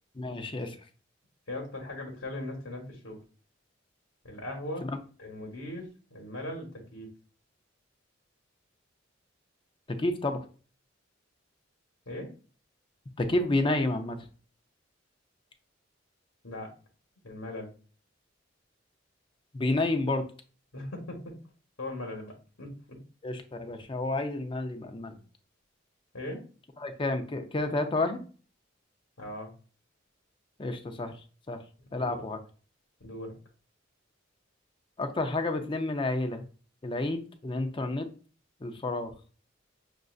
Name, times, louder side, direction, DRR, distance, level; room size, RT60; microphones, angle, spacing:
voice 1, 0.2-0.8 4.8-5.0 9.9-10.4 13.2-14.2 19.5-20.2 23.2-25.2 26.8-28.2 30.6-31.2 31.5-31.6 31.9-32.4 35.0-36.4 36.8-38.1 38.6-39.1, left 2 dB, 25° left, 6 dB, 0.5 m, -30 dB
voice 2, 1.5-3.2 4.2-4.9 5.2-7.1 12.1-12.3 16.4-16.7 17.2-17.7 20.7-21.3 21.8-22.3 22.6-23.0 26.1-26.4 29.2-29.5 31.9-32.2 33.0-33.3, left 1 dB, 90° left, -1 dB, 1.1 m, -39 dB
6.2 x 2.5 x 2.4 m, 0.39 s
head